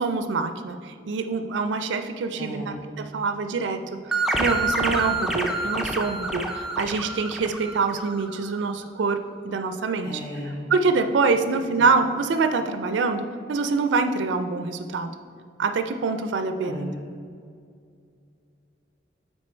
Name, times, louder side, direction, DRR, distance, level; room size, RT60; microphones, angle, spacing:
voice 1, 0.0-9.2 9.4-10.2 10.7-15.1 15.6-16.9, right 4 dB, 85° right, 8 dB, 0.4 m, -25 dB
voice 2, 2.3-2.8 10.0-10.6 16.6-16.9, left 1 dB, 55° left, -8 dB, 1.8 m, -35 dB
sound 1, 4.1-8.4, right 2 dB, 5° right, 0.5 m, -28 dB
7.6 x 4.4 x 4.3 m, 2.3 s
head